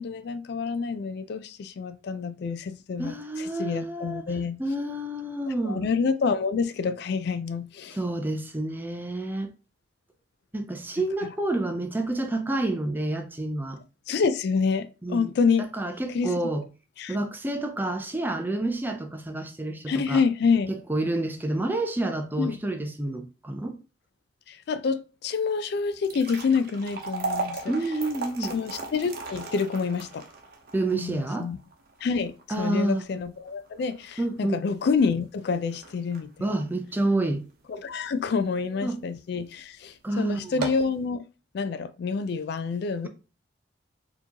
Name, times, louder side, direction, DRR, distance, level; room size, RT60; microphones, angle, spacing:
voice 1, 0.0-4.6 5.5-8.0 11.0-11.3 14.1-15.7 16.1-16.6 17.0-17.2 19.9-20.7 22.4-22.6 24.5-27.7 28.4-30.3 30.9-31.6 32.0-36.5 37.7-41.2 41.5-43.1, left 5 dB, 60° left, 0.3 m, -28 dB
voice 2, 3.0-4.2 4.6-5.8 8.0-9.5 10.5-13.8 15.0-15.3 15.7-16.6 17.1-20.2 20.7-23.8 27.7-28.5 30.7-31.5 32.5-33.0 34.2-34.6 36.4-37.4 38.8-39.0 40.0-40.7, right 2 dB, 10° right, 0.5 m, -29 dB
sound 1, 25.8-38.1 38.6-38.7 39.4-39.5 39.9-40.0 40.4-41.0, right 3 dB, 50° right, 0.8 m, -37 dB
4.4 x 2.9 x 2.8 m
head